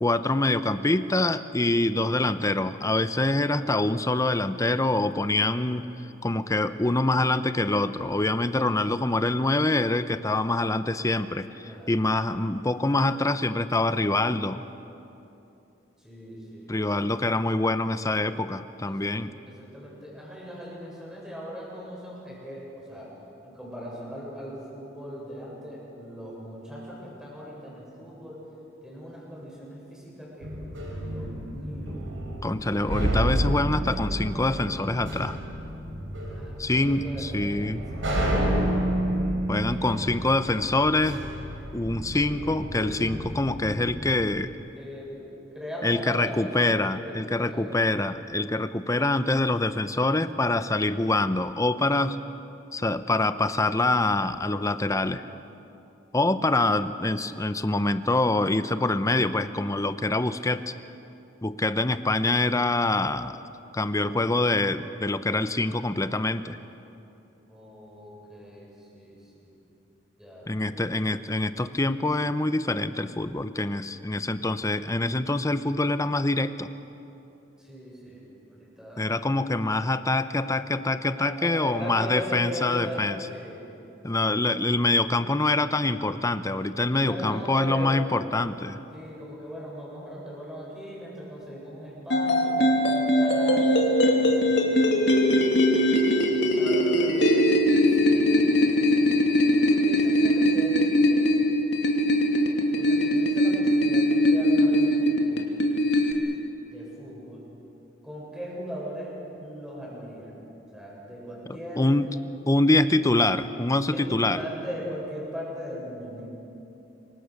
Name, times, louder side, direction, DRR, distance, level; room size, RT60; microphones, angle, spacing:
voice 1, 0.0-5.9 6.2-14.6 16.7-19.3 32.4-35.4 36.6-37.8 39.5-41.2 41.7-44.5 45.8-52.2 52.7-55.2 56.1-60.7 61.4-63.4 63.7-66.6 70.5-76.7 79.0-83.3 84.0-88.8 111.8-112.1 112.5-114.4, left 2 dB, 15° left, 12 dB, 0.7 m, -25 dB
voice 2, 11.6-12.0 16.0-17.0 18.9-19.2 19.5-23.1 23.4-28.4 28.8-30.6 31.0-32.0 36.3-38.2 39.7-39.8 44.8-47.8 67.5-69.5 70.2-70.9 77.6-79.1 81.2-83.7 84.0-84.6 86.9-88.0 88.9-96.1 96.6-97.4 97.8-98.3 99.7-100.9 102.8-105.5 106.7-107.5 108.0-110.4 110.7-112.1 113.7-116.3, equal, 5° right, -5 dB, 7.5 m, -39 dB
sound 1, 30.4-44.1, right 1 dB, 80° right, 4.8 m, -30 dB
sound 2, 92.1-106.1, equal, 60° left, 2.7 m, -21 dB
27.0 x 24.0 x 6.7 m, 2.9 s
head